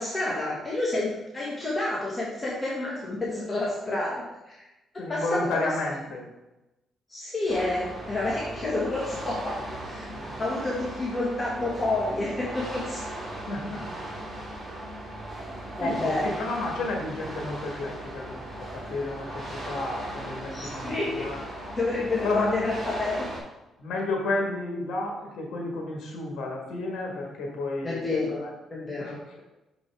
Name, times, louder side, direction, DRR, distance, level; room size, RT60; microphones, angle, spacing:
voice 1, 0.0-4.6 5.1-5.7 7.1-9.6 9.8-10.1 10.4-13.0 15.5-16.2 20.5-21.2 21.8-23.3 27.8-28.4 28.7-29.4, left 2 dB, 20° left, -5 dB, 1.6 m, -29 dB
voice 2, 5.0-6.2 8.3-8.4 10.0-10.3 13.4-13.9 15.8-21.8 22.2-22.5 23.8-28.5 28.8-29.2, left 2 dB, 70° left, 0 dB, 1.5 m, -32 dB
sound 1, 7.5-23.4, right 1 dB, 35° right, 2.3 m, -38 dB
6.4 x 5.2 x 3.5 m, 0.97 s
cardioid pair, 90°, 0 cm